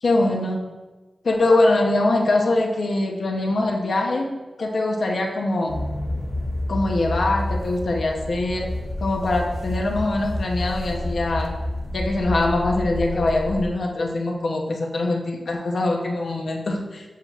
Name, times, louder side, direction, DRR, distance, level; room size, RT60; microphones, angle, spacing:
voice 1, 0.0-0.6 1.2-4.3 4.6-5.8 6.7-8.7 9.0-11.6 11.9-17.0, left 2 dB, 70° left, 1 dB, 0.7 m, -23 dB
sound 1, 5.7-13.7, left 1 dB, 35° left, 0.8 m, -29 dB
7.2 x 5.6 x 2.4 m, 1.2 s
wide cardioid pair, 80°, 0 cm